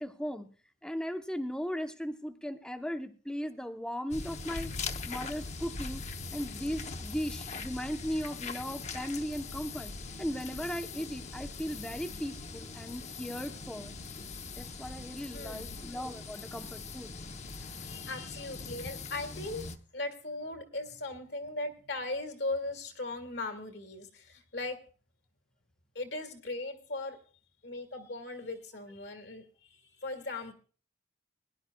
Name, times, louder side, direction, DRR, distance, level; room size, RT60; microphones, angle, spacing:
voice 1, 0.0-0.5 0.8-4.7 5.1-6.0 6.3-9.9 10.2-13.9 14.6-17.1, equal, 5° left, 6 dB, 0.8 m, -37 dB
sound 1, 4.1-19.8, left 4 dB, 40° left, 0.8 m, -41 dB
voice 2, 15.3-15.8 17.6-19.7 19.9-24.8 26.0-27.2 27.6-29.4 29.7-30.5, left 2 dB, 60° left, 7 dB, 1.8 m, -38 dB
21.5 x 11.5 x 2.3 m, 0.40 s
head